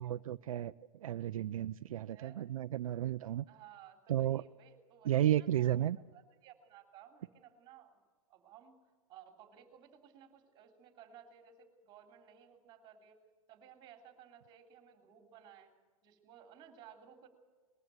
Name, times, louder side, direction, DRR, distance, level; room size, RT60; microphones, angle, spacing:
voice 1, 0.0-3.4 4.1-4.4 5.0-6.0, right 12 dB, 80° right, 12 dB, 0.5 m, -33 dB
voice 2, 2.1-2.5 3.5-8.0 8.3-8.8 9.1-13.2 13.5-15.7 16.0-17.3, right 9 dB, 25° right, 4 dB, 3.3 m, -58 dB
20.5 x 14.0 x 9.2 m, 1.4 s
hypercardioid pair, 150°, 17 cm